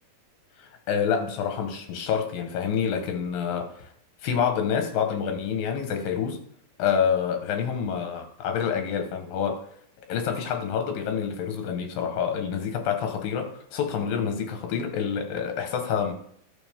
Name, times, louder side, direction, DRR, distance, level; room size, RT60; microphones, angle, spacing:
voice 1, 0.6-3.9 4.2-6.4 6.8-9.6 10.1-16.1, left 7 dB, 80° left, 5 dB, 3.2 m, -27 dB
12.5 x 7.1 x 3.7 m, 0.63 s
omnidirectional pair, 4.0 m